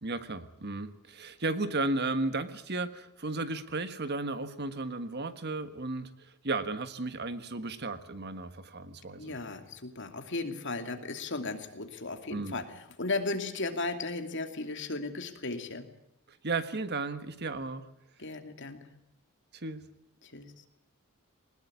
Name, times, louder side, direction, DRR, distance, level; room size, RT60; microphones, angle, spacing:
voice 1, 0.0-6.1 6.4-9.3 12.3-12.6 16.4-17.9 19.5-19.8, right 3 dB, 50° right, 10 dB, 1.5 m, -34 dB
voice 2, 9.2-15.9 18.2-19.0 20.2-20.7, left 3 dB, 55° left, 6 dB, 2.6 m, -36 dB
20.5 x 19.5 x 8.6 m, 0.78 s
head